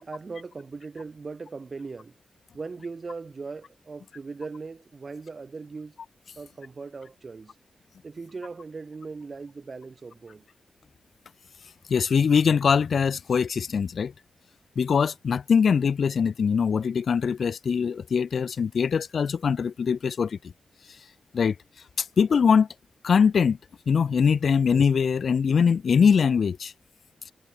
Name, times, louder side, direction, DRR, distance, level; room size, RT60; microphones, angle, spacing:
voice 1, 0.0-2.2 2.5-6.0 6.4-7.5 8.0-10.4, right 4 dB, 35° right, 4.2 m, -39 dB
voice 2, 11.9-14.1 14.8-20.4 21.3-21.6 22.0-22.7 23.0-23.6 23.9-26.7, left 6 dB, 60° left, 0.4 m, -22 dB
wide cardioid pair, 160°, 0 cm